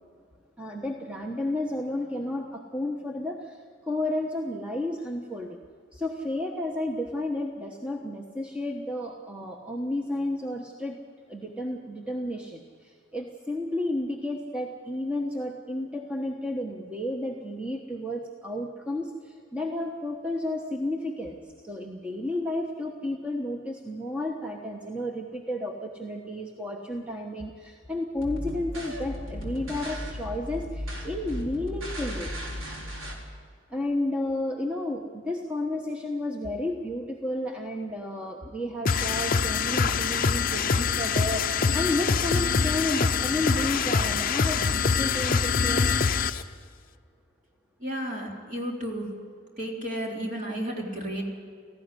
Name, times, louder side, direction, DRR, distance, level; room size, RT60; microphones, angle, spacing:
voice 1, 0.6-5.6 5.9-11.0 11.3-21.4 21.6-32.3 33.7-45.9, left 1 dB, 5° right, 0 dB, 1.1 m, -32 dB
sound 1, 28.2-33.1, left 1 dB, 70° right, 4.2 m, -36 dB
sound 2, 38.9-46.4, left 5 dB, 40° left, 0.6 m, -24 dB
voice 2, 47.8-49.0 49.6-51.2, equal, 40° right, -1 dB, 3.8 m, -32 dB
18.0 x 15.0 x 9.8 m, 2.1 s
head